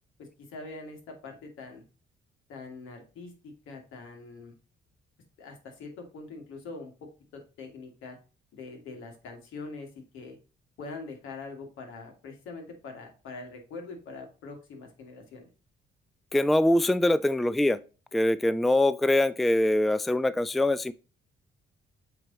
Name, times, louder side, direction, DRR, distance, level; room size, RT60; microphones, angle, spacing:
voice 1, 0.2-1.8 2.5-4.5 5.4-8.2 8.5-10.4 10.8-15.5, left 3 dB, 85° left, 2.0 m, -43 dB
voice 2, 16.3-17.8 18.1-20.9, left 1 dB, ahead, 0.3 m, -23 dB
7.8 x 3.4 x 3.9 m
cardioid pair, 90°, 20 cm